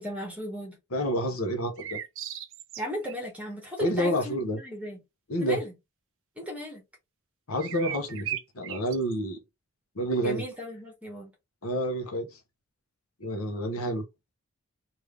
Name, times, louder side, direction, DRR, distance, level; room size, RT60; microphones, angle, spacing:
voice 1, 0.0-0.8 2.8-5.0 5.4-5.7 6.4-6.8 10.2-11.3, left 1 dB, 5° right, 1.4 m, -36 dB
voice 2, 0.9-2.0 3.8-4.6 5.3-5.6 7.5-9.4 10.0-10.4 11.6-12.3 13.2-14.0, equal, 70° left, 0.9 m, -29 dB
sound 1, 1.8-3.1 7.6-9.1, right 10 dB, 55° right, 0.4 m, -36 dB
3.3 x 2.7 x 3.4 m
head